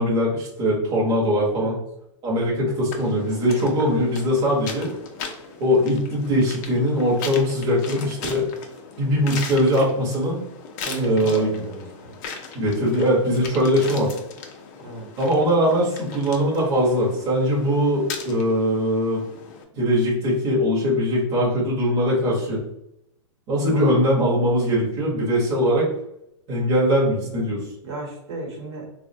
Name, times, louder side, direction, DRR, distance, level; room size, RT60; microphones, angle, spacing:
voice 1, 0.0-1.8 2.2-4.9 5.6-8.4 9.0-10.4 11.0-11.5 12.5-14.1 15.2-19.2 19.8-22.6 23.5-25.9 26.5-27.6, equal, 25° right, -5 dB, 0.8 m, -21 dB
sound 1, 2.9-19.6, left 5 dB, 35° left, 0.4 m, -38 dB
voice 2, 10.8-12.2 13.6-13.7 14.8-15.1 23.7-24.0 27.8-28.9, right 2 dB, 55° right, 0 dB, 1.0 m, -34 dB
3.4 x 2.1 x 2.6 m, 0.82 s
hypercardioid pair, 155°, 16 cm